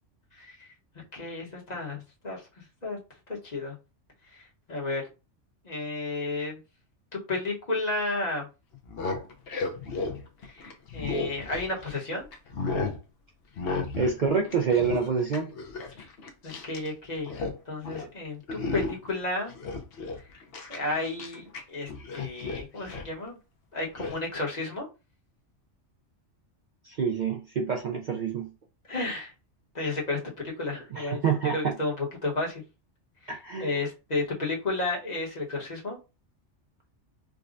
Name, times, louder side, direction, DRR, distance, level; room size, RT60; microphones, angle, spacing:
voice 1, 0.3-0.7 1.1-2.4 2.8-3.0 3.4-3.7 4.3-4.4 4.7-5.1 5.6-6.6 7.1-8.5 10.5-12.3 16.4-17.3 17.7-19.5 20.7-23.4 23.7-24.9 28.9-29.3 29.7-32.6 33.2-33.3 33.6-36.0, left 2 dB, 35° left, -3 dB, 1.1 m, -32 dB
sound 1, 8.7-12.0 12.3-13.0 13.6-14.2 14.4-16.9 17.1-17.6 17.8-18.1 18.5-19.1 19.5-21.6 21.9-23.1 24.0-24.2, left 3 dB, 60° left, 0.8 m, -34 dB
voice 2, 14.0-15.5 26.8-28.5 30.9-31.7 33.3-33.7, right 5 dB, 55° right, 2 dB, 0.5 m, -27 dB
4.9 x 2.1 x 2.5 m, 0.29 s
omnidirectional pair, 1.2 m